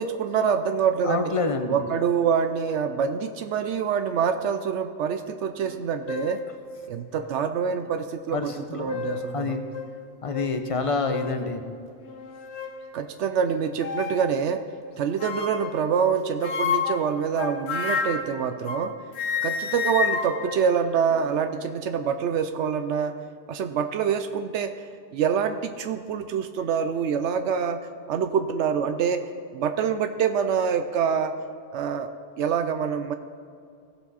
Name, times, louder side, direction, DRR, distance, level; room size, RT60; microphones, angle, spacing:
voice 1, 0.0-1.3 1.7-6.4 6.9-9.6 12.9-14.6 15.0-18.9 19.4-23.2 23.5-24.7 25.1-29.2 29.5-31.3 31.7-32.1 32.4-33.1, right 7 dB, 80° right, 8 dB, 0.9 m, -26 dB
voice 2, 1.1-1.8 8.3-9.0 9.3-9.6 10.2-11.6, left 4 dB, 35° left, 7 dB, 0.7 m, -27 dB
sound 1, 5.6-5.8 6.1-6.5 7.2-7.3 8.6-9.3 9.7-9.9 10.3-10.5 11.1-11.4 12.1-12.8 13.8-14.3 15.2-15.8 16.4-18.9 19.1-21.5, left 6 dB, 70° left, 1.1 m, -30 dB
16.5 x 6.7 x 4.1 m, 2.4 s
omnidirectional pair, 1.2 m